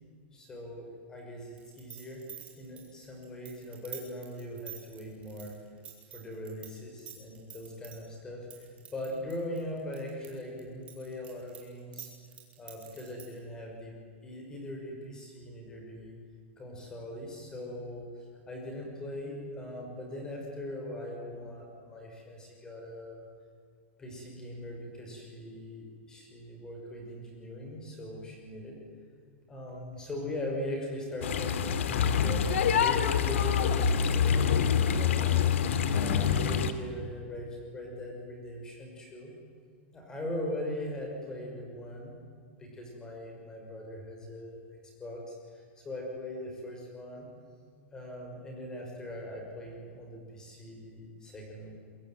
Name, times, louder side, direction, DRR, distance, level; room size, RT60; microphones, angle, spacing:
voice 1, 0.3-2.2 2.6-5.6 6.1-12.1 12.6-14.0 14.2-16.2 16.6-18.1 18.5-23.3 24.0-28.8 29.5-32.4 32.8-35.3 35.9-39.3 39.9-42.2 42.6-44.6 45.0-47.3 47.9-51.7, left 1 dB, 10° left, 1 dB, 5.7 m, -40 dB
sound 1, 1.6-6.7 7.0-8.0 8.5-10.3 10.6-13.4, right 10 dB, 20° right, 4.8 m, -46 dB
sound 2, 31.2-36.7, left 7 dB, 75° left, 2.3 m, -26 dB
27.0 x 22.5 x 9.3 m, 2.1 s
supercardioid pair, 175°, 7 cm